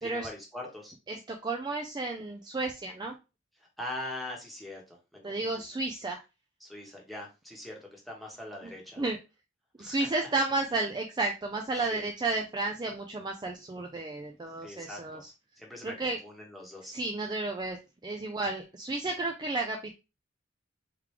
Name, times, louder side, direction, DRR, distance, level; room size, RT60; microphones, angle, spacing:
voice 1, 0.0-0.9 3.8-5.6 6.6-9.0 9.8-10.3 11.9-12.1 14.6-15.2 15.6-17.0, left 1 dB, ahead, -2 dB, 1.1 m, -42 dB
voice 2, 1.1-3.1 5.2-6.2 9.0-9.2 9.8-15.3 15.8-16.2 16.9-17.8 18.0-19.9, right 3 dB, 25° right, 2 dB, 0.4 m, -32 dB
3.6 x 3.2 x 3.2 m, 0.27 s
head